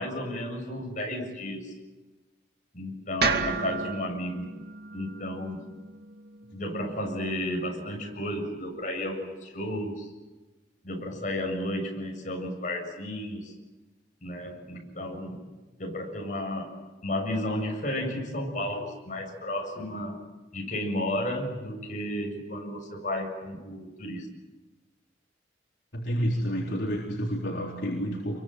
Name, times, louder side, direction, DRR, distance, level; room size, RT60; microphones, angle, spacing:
voice 1, 0.0-1.7 2.7-4.5 4.9-5.7 6.5-10.1 10.8-13.5 14.2-15.4 15.8-16.8 17.0-20.2 20.5-24.3, left 1 dB, 40° left, 1 dB, 7.4 m, -33 dB
sound 1, 3.2-7.4, right 4 dB, 55° right, 2.3 m, -33 dB
voice 2, 25.9-28.4, equal, 65° left, -2 dB, 3.9 m, -30 dB
28.5 x 23.5 x 8.0 m, 1.2 s
head